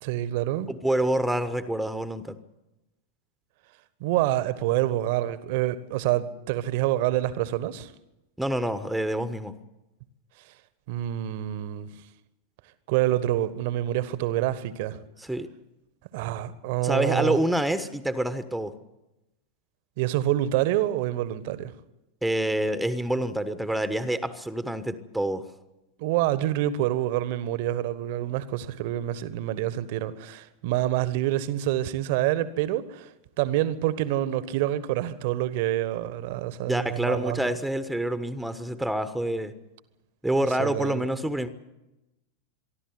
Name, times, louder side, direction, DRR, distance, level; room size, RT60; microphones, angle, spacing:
voice 1, 0.0-0.7 4.0-7.9 10.9-11.9 12.9-15.0 16.1-17.4 20.0-21.7 26.0-33.1 33.4-37.5 40.6-41.0, right 13 dB, 50° right, 1.3 m, -27 dB
voice 2, 0.7-2.4 8.4-9.5 15.3-15.5 16.8-18.7 22.2-25.5 36.6-39.5 40.2-41.5, right 1 dB, ahead, 1.2 m, -27 dB
24.5 x 12.0 x 9.7 m
figure-of-eight pair, 90°, 0 cm